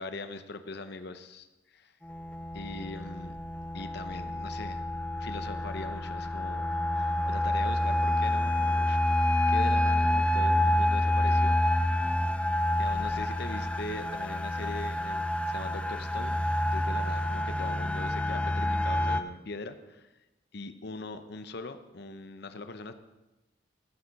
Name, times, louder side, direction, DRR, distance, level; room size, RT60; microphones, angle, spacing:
voice 1, 0.0-1.9 2.5-3.4 3.7-4.9 5.2-6.6 7.0-9.2 9.5-11.8 12.8-20.1 20.5-22.9, left 3 dB, 55° left, 9 dB, 0.8 m, -41 dB
sound 1, 2.1-19.2, left 1 dB, 5° left, 0.4 m, -28 dB
15.0 x 8.7 x 5.3 m, 1.0 s
head